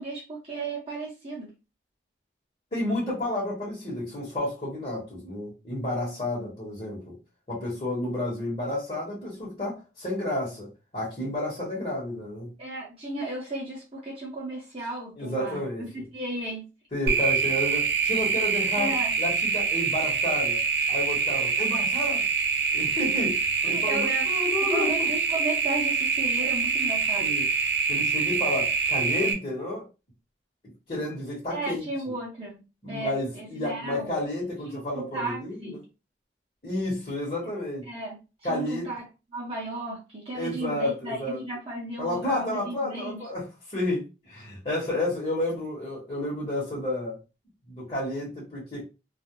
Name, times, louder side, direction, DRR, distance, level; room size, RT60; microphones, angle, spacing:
voice 1, 0.0-1.5 12.6-16.6 18.7-19.1 23.6-24.3 24.7-27.4 31.5-32.6 32.9-34.2 34.7-35.8 37.9-38.2 38.5-39.1 39.3-43.2, right 2 dB, 35° right, -4 dB, 0.7 m, -34 dB
voice 2, 2.7-7.2 7.5-10.7 10.9-12.5 15.2-16.0 16.9-20.6 20.9-22.3 22.7-23.3 23.6-25.1 27.2-27.5 27.9-29.8 30.9-31.9 32.8-35.8 36.6-37.9 38.4-38.9 40.3-41.4 42.0-47.2 47.7-48.8, left 1 dB, 40° left, -6 dB, 1.0 m, -31 dB
sound 1, 17.1-29.3, right 5 dB, 75° right, 0.5 m, -25 dB
2.3 x 2.0 x 2.9 m, 0.29 s
head